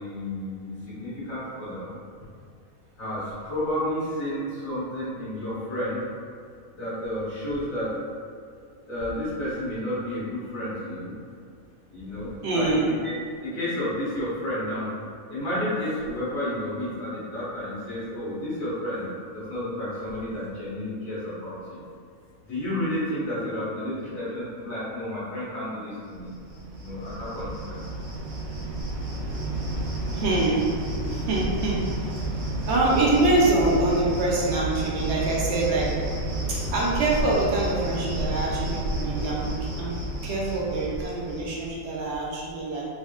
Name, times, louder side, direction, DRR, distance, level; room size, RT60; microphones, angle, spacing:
voice 1, 0.0-1.9 3.0-6.0 6.7-7.9 8.9-11.2 11.9-13.1 13.4-14.9 15.3-19.1 19.3-21.8 22.5-26.3 26.8-27.8, left 1 dB, 75° left, -10 dB, 1.7 m, -31 dB
voice 2, 12.4-12.9 30.1-30.7 31.1-32.0 32.7-35.9 36.7-42.8, right 2 dB, 65° right, -4 dB, 0.8 m, -25 dB
Cricket, 26.1-41.9, right 1 dB, 80° right, 1.1 m, -31 dB
3.5 x 2.8 x 2.4 m, 2.3 s
omnidirectional pair, 1.4 m